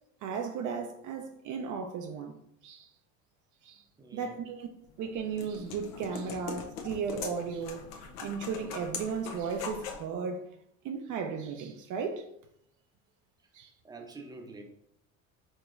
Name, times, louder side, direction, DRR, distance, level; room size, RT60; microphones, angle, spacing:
voice 1, 0.2-2.3 2.6-2.9 3.6-3.8 4.1-4.7 5.0-10.5 10.8-12.3 13.5-13.7, right 5 dB, 50° right, 0.6 m, -35 dB
voice 2, 4.0-4.4 13.8-14.6, right 3 dB, 10° right, 0.7 m, -46 dB
sound 1, 4.8-10.1, left 5 dB, 85° left, 0.7 m, -42 dB
5.0 x 2.9 x 2.5 m
supercardioid pair, 100°, 39 cm